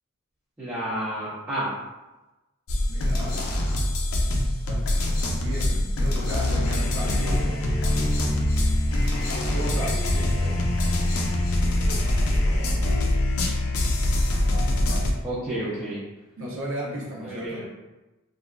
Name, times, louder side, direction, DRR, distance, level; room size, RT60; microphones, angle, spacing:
voice 1, 0.6-1.7 15.2-16.0 17.2-17.7, right 1 dB, 15° right, -12 dB, 0.6 m, -30 dB
sound 1, 2.7-15.1, left 1 dB, 75° left, 0.5 m, -24 dB
voice 2, 2.8-3.5 4.7-4.9 5.3-7.6 9.5-10.6 16.4-17.7, equal, 65° right, -3 dB, 0.6 m, -35 dB
3.2 x 2.5 x 2.2 m, 1.0 s
head